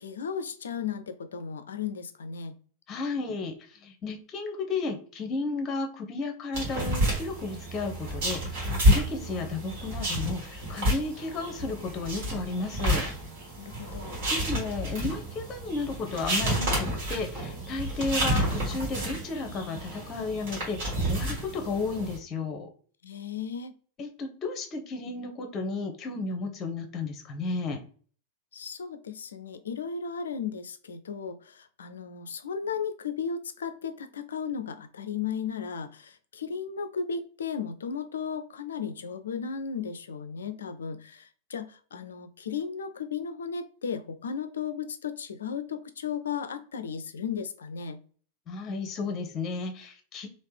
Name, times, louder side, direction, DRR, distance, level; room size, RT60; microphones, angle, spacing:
voice 1, 0.0-2.6 13.6-14.2 23.0-23.7 28.5-48.0, left 6 dB, 65° left, 11 dB, 0.4 m, -35 dB
voice 2, 2.9-3.5 3.8-13.1 14.3-22.7 24.0-27.8 48.5-50.3, left 3 dB, 30° left, 5 dB, 0.7 m, -33 dB
sound 1, 6.5-22.2, equal, 50° right, 1.6 m, -30 dB
3.2 x 2.5 x 3.2 m, 0.43 s
figure-of-eight pair, 90°, 0 cm